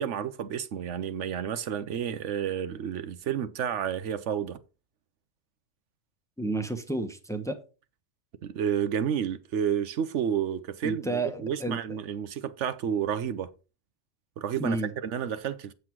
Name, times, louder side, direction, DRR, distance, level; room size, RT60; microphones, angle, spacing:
voice 1, 0.0-4.6 8.4-13.5 14.4-15.7, right 8 dB, 75° right, 1.1 m, -30 dB
voice 2, 6.4-7.6 10.8-11.8 14.6-14.9, right 2 dB, 5° left, 1.0 m, -31 dB
8.0 x 7.7 x 4.5 m
omnidirectional pair, 1.2 m